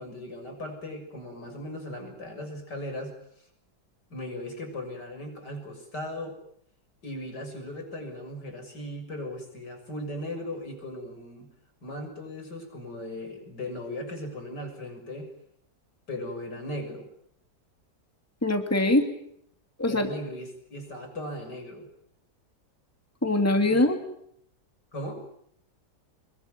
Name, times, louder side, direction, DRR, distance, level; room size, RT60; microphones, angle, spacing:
voice 1, 0.0-3.1 4.1-6.4 7.0-11.5 11.8-15.3 16.1-17.1 19.9-21.9 23.7-23.8 24.9-25.2, left 1 dB, 75° left, 5 dB, 7.4 m, -37 dB
voice 2, 18.4-19.1 19.8-20.1 23.2-24.0, left 1 dB, 10° left, 5 dB, 2.6 m, -22 dB
26.0 x 22.0 x 9.4 m, 0.71 s
omnidirectional pair, 1.9 m